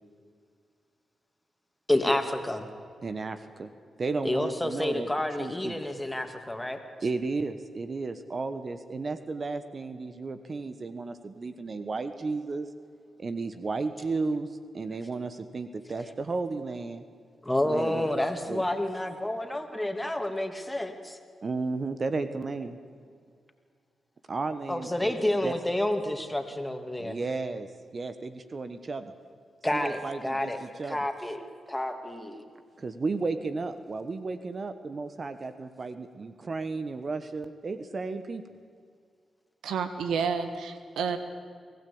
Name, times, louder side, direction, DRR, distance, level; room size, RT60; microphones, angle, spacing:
voice 1, 1.9-2.7 4.2-6.8 16.0-16.1 17.4-21.2 24.7-27.2 29.6-32.4, left 1 dB, 10° left, 6 dB, 2.7 m, -29 dB
voice 2, 3.0-3.7 4.0-5.1 5.4-5.7 7.0-12.7 13.2-14.5 14.7-17.0 17.6-18.1 18.5-18.6 21.4-22.8 24.3-25.1 25.4-25.5 27.0-27.7 27.9-29.1 29.7-31.0 32.8-38.4, right 3 dB, 50° right, 10 dB, 1.2 m, -33 dB
voice 3, 39.6-41.2, right 6 dB, 85° right, 9 dB, 1.4 m, -30 dB
23.5 x 16.0 x 8.7 m, 2.1 s
supercardioid pair, 50°, 0 cm